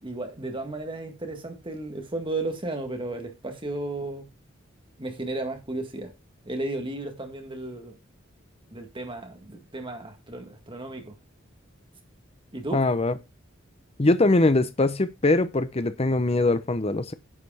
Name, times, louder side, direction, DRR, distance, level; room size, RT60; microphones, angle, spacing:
voice 1, 0.0-4.3 5.0-6.1 6.5-7.9 8.7-11.2 12.5-12.8, right 2 dB, 25° right, 1.8 m, -34 dB
voice 2, 12.7-13.2 14.0-17.1, left 2 dB, 30° left, 0.8 m, -22 dB
9.8 x 5.0 x 4.9 m
head